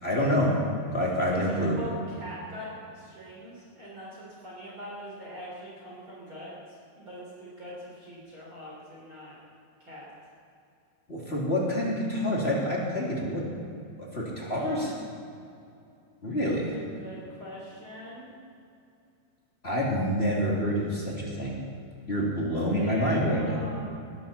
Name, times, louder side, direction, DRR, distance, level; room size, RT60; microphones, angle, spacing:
voice 1, 0.0-0.5 0.9-1.8 11.1-13.4 14.1-14.9 16.2-16.7 19.6-21.6 22.1-23.6, equal, 20° left, -4 dB, 2.2 m, -27 dB
voice 2, 1.3-9.4 9.8-10.1 14.5-15.0 16.7-18.3 22.7-23.8, equal, 30° right, -6 dB, 4.0 m, -42 dB
20.5 x 14.0 x 4.3 m, 2.5 s
omnidirectional pair, 4.9 m